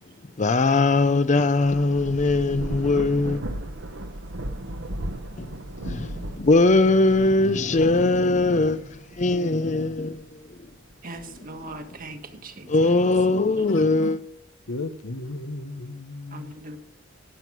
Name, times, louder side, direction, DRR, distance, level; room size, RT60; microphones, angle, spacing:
voice 1, 0.4-3.4 5.4-5.5 5.8-8.8 9.2-10.2 12.7-14.2, left 2 dB, 35° left, 0.6 m, -20 dB
Thunder / Rain, 1.3-10.2 10.7-12.1, right 1 dB, 60° right, 1.3 m, -36 dB
voice 2, 11.0-12.9 16.3-16.8, right 2 dB, 45° right, 1.6 m, -40 dB
voice 3, 13.7-14.1 14.7-16.5, left 2 dB, 80° left, 1.1 m, -34 dB
18.5 x 7.9 x 6.2 m
head